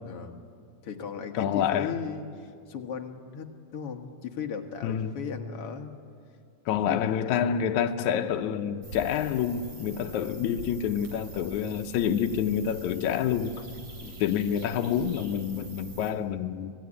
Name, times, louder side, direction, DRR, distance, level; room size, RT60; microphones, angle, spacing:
voice 1, 0.0-0.4 0.8-5.9 6.9-7.4 14.0-14.2, left 7 dB, 55° left, 2.1 m, -37 dB
voice 2, 1.3-2.0 4.8-5.1 6.7-13.5 14.2-16.7, left 9 dB, 80° left, 2.2 m, -28 dB
sound 1, 8.8-16.1, right 2 dB, 55° right, 4.7 m, -45 dB
25.5 x 18.0 x 9.9 m
omnidirectional pair, 3.4 m